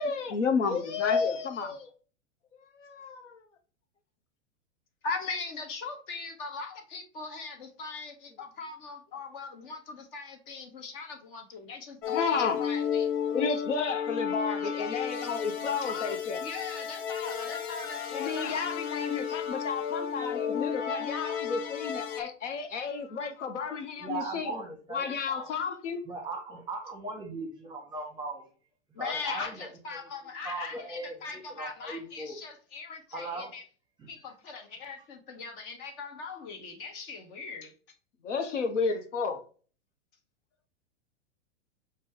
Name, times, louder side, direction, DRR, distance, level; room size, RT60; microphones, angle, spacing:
voice 1, 0.0-1.9 2.8-3.4 12.1-12.6 13.3-16.4 18.1-24.5 24.9-26.0 38.2-39.4, left 5 dB, 80° left, 0.7 m, -31 dB
voice 2, 5.0-13.1 14.6-14.9 15.6-18.7 28.9-33.6 34.1-37.7, left 4 dB, 50° left, 1.0 m, -40 dB
sound 1, 12.0-22.2, left 8 dB, 25° left, 0.4 m, -33 dB
voice 3, 24.0-25.5 26.0-28.4 29.0-29.7 29.9-30.1 30.4-32.4 33.1-33.5 34.0-34.1, right 2 dB, 10° right, 1.0 m, -38 dB
5.1 x 2.2 x 3.5 m
hypercardioid pair, 110°, 36 cm